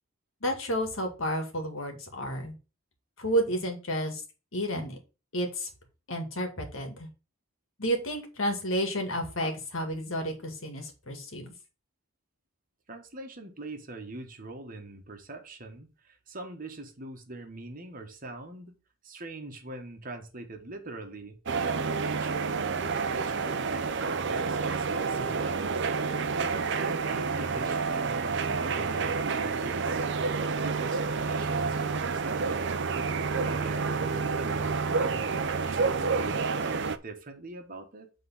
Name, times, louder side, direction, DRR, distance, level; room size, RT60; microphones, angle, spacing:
voice 1, 0.4-2.5 3.2-4.2 4.5-5.0 5.3-5.7 6.1-7.1 7.8-11.5, equal, 70° left, 2.0 m, -31 dB
voice 2, 12.9-18.7 19.0-21.4 21.9-22.8 23.1-25.9 26.3-30.0 30.5-32.7 33.4-38.1, right 2 dB, 40° right, 1.3 m, -42 dB
sound 1, 21.5-37.0, right 4 dB, 55° right, 0.6 m, -29 dB
7.7 x 3.8 x 5.6 m
head